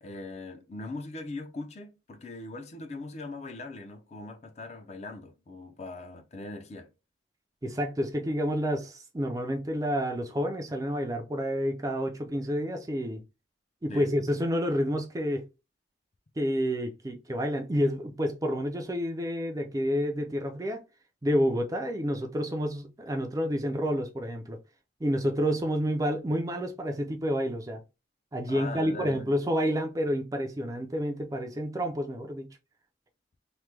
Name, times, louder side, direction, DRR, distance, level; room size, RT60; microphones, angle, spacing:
voice 1, 0.0-6.9 13.9-14.1 28.5-29.2, left 2 dB, 35° left, 0.5 m, -40 dB
voice 2, 7.6-13.2 13.8-15.5 16.4-20.8 21.2-24.6 25.0-27.8 28.3-32.5, equal, 20° right, 0.4 m, -29 dB
3.1 x 2.1 x 3.3 m
head